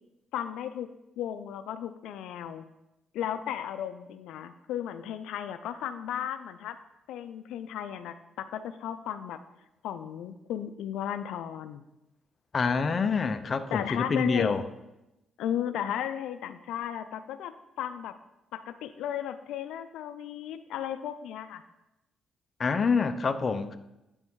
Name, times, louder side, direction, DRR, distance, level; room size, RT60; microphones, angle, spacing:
voice 1, 0.3-0.9 1.2-2.6 3.1-6.8 7.1-9.4 9.8-11.9 13.7-14.5 15.4-18.1 18.5-21.6, left 10 dB, 85° left, 10 dB, 0.4 m, -35 dB
voice 2, 12.5-14.6 22.6-23.8, left 5 dB, 40° left, 9 dB, 0.6 m, -26 dB
9.1 x 5.4 x 4.7 m, 0.93 s
cardioid pair, 90°, 0 cm